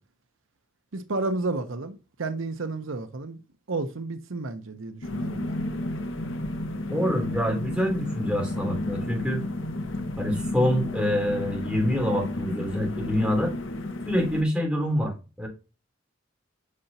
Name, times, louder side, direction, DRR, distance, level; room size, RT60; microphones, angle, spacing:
voice 1, 0.9-3.4 3.7-5.6, right 3 dB, 80° right, 0.8 m, -31 dB
sound 1, 5.0-14.4, left 1 dB, 70° left, 1.1 m, -32 dB
voice 2, 6.9-9.4 10.2-13.5 14.1-15.5, equal, 5° right, 3.1 m, -26 dB
8.4 x 5.8 x 2.8 m
head